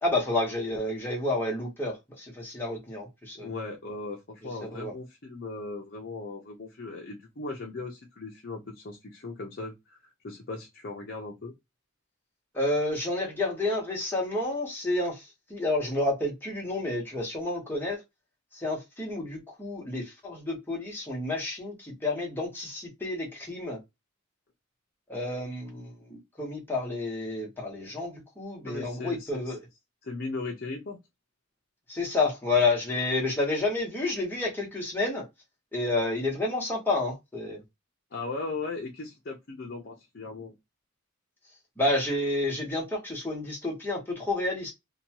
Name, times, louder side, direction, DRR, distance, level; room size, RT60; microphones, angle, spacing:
voice 1, 0.0-3.5 4.6-4.9 12.5-18.0 18.5-23.8 25.1-29.6 31.9-35.2 35.7-37.6 41.8-44.7, left 2 dB, 10° left, 1.0 m, -30 dB
voice 2, 3.3-11.5 28.7-29.6 30.0-31.0 38.1-40.5, left 3 dB, 50° left, 0.6 m, -38 dB
2.7 x 2.2 x 2.8 m
head